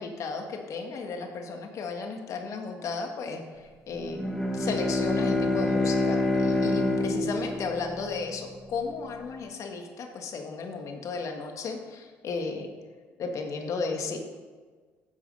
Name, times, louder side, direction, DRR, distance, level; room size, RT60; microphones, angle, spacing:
voice 1, 0.0-12.7 13.2-14.2, left 4 dB, 60° left, 3 dB, 1.8 m, -34 dB
Bowed string instrument, 4.1-8.7, left 2 dB, 10° left, 1.9 m, -27 dB
10.5 x 7.3 x 5.5 m, 1.5 s
supercardioid pair, 60°, 6 cm